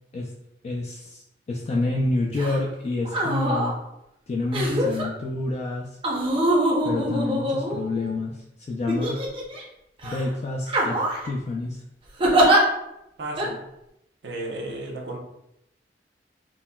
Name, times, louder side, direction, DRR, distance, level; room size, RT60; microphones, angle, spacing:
voice 1, 0.6-1.2 1.5-3.8 4.3-5.9 6.8-8.4 8.7-9.2 10.0-11.0 11.2-11.8, left 2 dB, 35° left, -1 dB, 0.3 m, -28 dB
sound 1, 2.4-2.6 3.0-3.7 4.5-5.1 6.0-8.1 8.9-9.6 10.0-10.2 10.7-11.3 12.2-12.6 13.4-13.5, right 1 dB, 30° right, 0.6 m, -23 dB
voice 2, 13.2-13.6 14.2-15.2, right 2 dB, 70° right, 0 dB, 0.6 m, -33 dB
3.9 x 2.0 x 2.2 m, 0.83 s
head